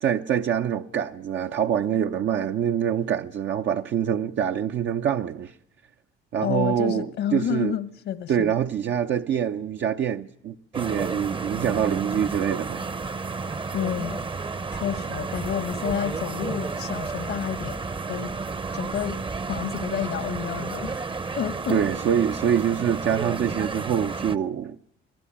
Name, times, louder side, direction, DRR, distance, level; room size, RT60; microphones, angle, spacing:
voice 1, 0.0-5.5 6.3-7.1 7.3-7.7 8.3-12.9 21.7-24.8, right 9 dB, 65° right, 0.8 m, -25 dB
voice 2, 6.4-8.5 13.7-14.2 14.7-17.8 18.1-18.3 18.7-19.2 19.5-21.0 21.4-21.8, left 10 dB, 80° left, 1.2 m, -29 dB
sound 1, 10.7-24.4, right 4 dB, 25° right, 0.8 m, -32 dB
23.0 x 16.5 x 8.7 m
cardioid pair, 90°, 20 cm